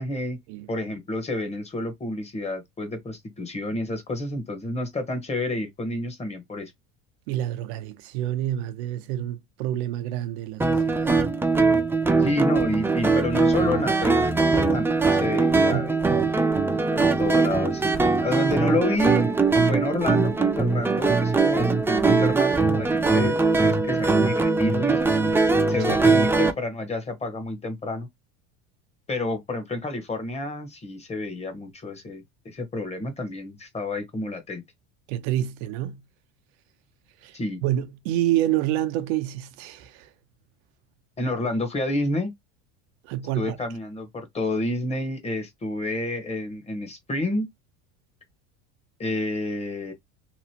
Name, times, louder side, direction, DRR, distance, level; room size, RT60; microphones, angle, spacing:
voice 1, 0.0-0.4 0.7-6.7 12.2-14.3 14.6-16.1 16.9-19.4 19.7-25.0 25.7-28.1 29.1-34.6 37.3-37.6 41.2-42.3 43.4-47.5 49.0-49.9, left 2 dB, 20° left, 0.9 m, -29 dB
voice 2, 7.3-11.3 15.7-16.5 25.8-26.0 35.1-36.0 37.2-40.1 43.0-43.6, right 13 dB, 80° right, 0.6 m, -28 dB
sound 1, 10.6-26.5, right 3 dB, 5° right, 0.4 m, -21 dB
3.0 x 2.5 x 2.7 m
supercardioid pair, 115°, 33 cm